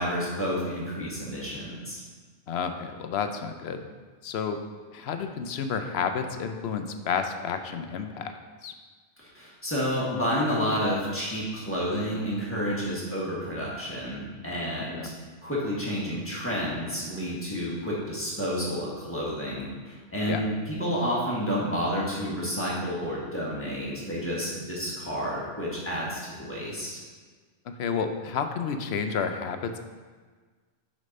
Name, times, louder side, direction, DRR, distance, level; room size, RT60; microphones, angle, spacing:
voice 1, 0.0-2.0 9.2-15.1 15.4-27.0, equal, 10° left, -6 dB, 1.6 m, -30 dB
voice 2, 2.5-3.9 4.2-4.6 4.9-8.7 14.9-15.1 20.3-20.4 27.7-29.8, left 6 dB, 70° left, 7 dB, 0.8 m, -31 dB
6.4 x 4.2 x 5.2 m, 1.4 s
omnidirectional pair, 1.2 m